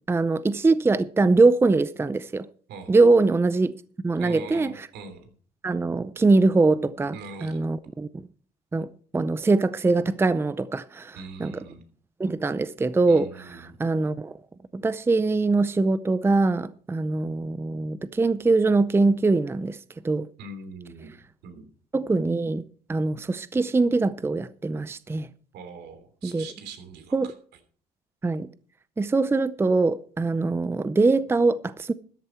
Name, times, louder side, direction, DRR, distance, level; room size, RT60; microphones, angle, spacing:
voice 1, 0.1-2.4 2.9-3.7 4.0-4.7 5.6-7.2 7.4-8.1 8.7-8.9 9.1-11.5 12.2-13.3 13.8-14.4 14.7-19.8 20.0-20.3 21.9-25.3 26.2-26.4 27.1-27.3 28.2-28.5 29.0-31.9, right 3 dB, 15° right, 0.6 m, -22 dB
voice 2, 2.7-3.0 4.2-5.3 7.1-7.6 11.1-11.8 13.1-13.8 20.4-21.7 25.5-27.2, right 4 dB, 75° right, 3.3 m, -42 dB
13.5 x 11.0 x 4.5 m
cardioid pair, 110°, 17 cm